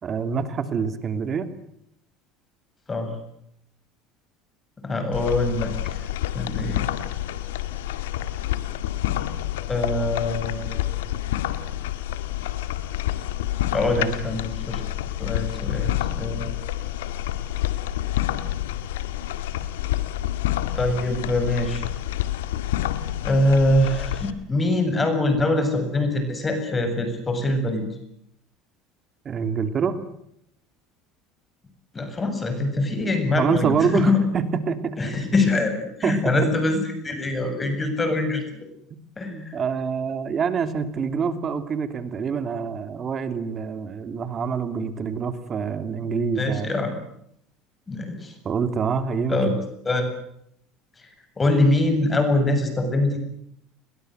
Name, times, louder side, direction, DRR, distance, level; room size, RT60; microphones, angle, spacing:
voice 1, 0.0-1.5 13.9-14.1 29.2-30.0 33.4-35.0 36.0-36.4 39.3-46.8 48.4-49.6, right 6 dB, 35° right, 10 dB, 2.8 m, -26 dB
voice 2, 4.8-6.0 6.3-6.8 9.7-11.0 13.7-14.8 15.2-16.5 20.7-21.9 23.2-27.8 31.9-34.2 35.0-38.4 39.2-39.6 46.4-47.0 47.9-48.3 49.3-49.5 49.8-50.1 51.0-51.1 51.4-53.2, left 2 dB, 20° left, 7 dB, 7.8 m, -23 dB
sound 1, 5.1-24.3, left 13 dB, 90° left, 1.9 m, -28 dB
29.5 x 22.5 x 8.0 m, 0.75 s
supercardioid pair, 100°, 0 cm